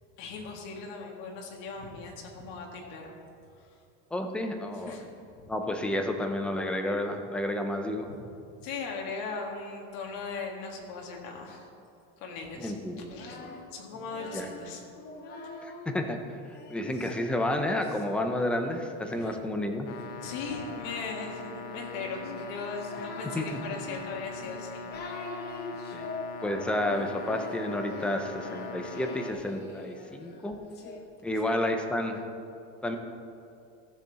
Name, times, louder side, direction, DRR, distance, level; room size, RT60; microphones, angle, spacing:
voice 1, 0.2-3.1 3.6-3.7 4.8-5.1 5.4-5.5 7.9-8.2 8.6-11.7 12.2-13.4 13.7-14.8 19.2-19.4 20.2-24.9, left 4 dB, 60° left, 1 dB, 1.9 m, -39 dB
voice 2, 4.1-5.0 5.5-8.1 12.6-13.5 14.3-14.5 15.6-16.2 16.7-19.9 23.3-23.6 25.9-26.1 26.4-30.6 31.2-32.2 32.8-33.0, left 1 dB, 5° left, 4 dB, 0.4 m, -31 dB
Singing, 12.9-16.0 16.5-31.0, left 3 dB, 30° left, 0.9 m, -44 dB
sound 1, 19.9-29.3, left 4 dB, 85° left, 0.8 m, -41 dB
14.5 x 6.9 x 4.0 m, 2.5 s
cardioid pair, 165°, 33 cm